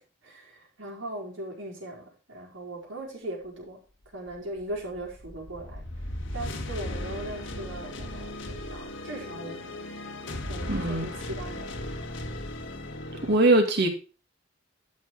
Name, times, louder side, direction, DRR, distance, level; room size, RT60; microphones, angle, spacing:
voice 1, 0.0-3.8 4.1-6.0 6.3-9.9 10.5-12.0, right 1 dB, 90° right, -2 dB, 5.1 m, -39 dB
sound 1, 4.3-13.4, left 1 dB, 75° left, 1.6 m, -37 dB
voice 2, 10.7-11.1 13.2-13.9, right 2 dB, 60° right, 4 dB, 2.5 m, -21 dB
12.5 x 6.4 x 4.7 m, 0.35 s
head